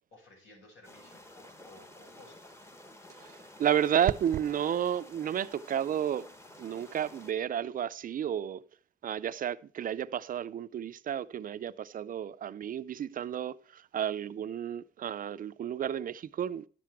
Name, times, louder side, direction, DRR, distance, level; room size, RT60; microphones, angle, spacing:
voice 1, 0.1-2.5, left 1 dB, 85° left, 6.6 m, -56 dB
sound 1, 0.8-7.3, left 1 dB, 15° left, 0.8 m, -52 dB
voice 2, 3.2-6.3 6.6-8.6 9.0-16.6, right 9 dB, 45° right, 0.4 m, -32 dB
11.0 x 7.6 x 4.6 m
wide cardioid pair, 165°, 20 cm